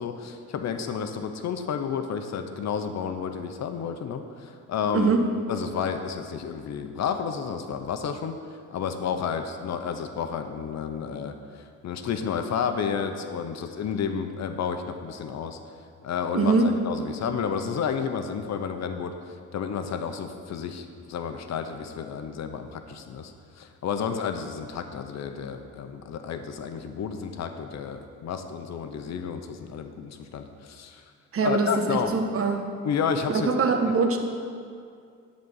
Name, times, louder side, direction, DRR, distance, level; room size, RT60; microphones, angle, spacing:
voice 1, 0.0-5.1 5.5-8.4 8.7-15.6 16.0-31.0 31.4-32.2 32.8-33.5, left 7 dB, 60° left, 7 dB, 0.8 m, -31 dB
voice 2, 16.3-16.7 31.3-32.6 33.3-34.2, right 4 dB, 50° right, 4 dB, 1.2 m, -23 dB
11.0 x 4.1 x 7.2 m, 2.3 s
cardioid pair, 90°, 30 cm